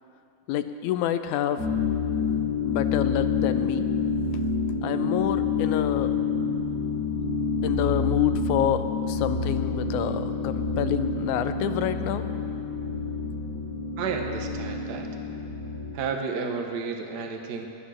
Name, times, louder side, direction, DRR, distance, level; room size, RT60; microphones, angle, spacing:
voice 1, 0.5-1.7 2.6-3.9 4.8-6.2 7.6-12.3 13.2-13.3, left 11 dB, 80° left, 10 dB, 2.1 m, -28 dB
sound 1, 1.6-15.9, left 4 dB, 30° left, 4.8 m, -28 dB
voice 2, 14.0-15.1 15.9-17.7, right 5 dB, 60° right, 3 dB, 1.1 m, -31 dB
20.5 x 10.0 x 6.3 m, 2.7 s
omnidirectional pair, 3.5 m